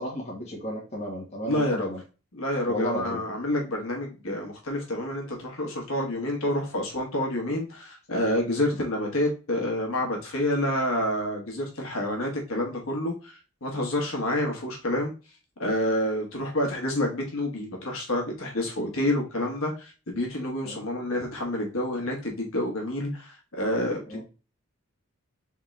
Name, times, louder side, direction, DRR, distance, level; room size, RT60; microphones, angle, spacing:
voice 1, 0.0-2.0 2.7-3.2 20.6-20.8 24.1-24.2, equal, 30° left, -2 dB, 1.3 m, -33 dB
voice 2, 1.5-1.9 2.3-15.1 15.6-24.2, left 1 dB, 65° left, 1 dB, 1.2 m, -28 dB
3.7 x 3.6 x 3.1 m, 0.33 s
head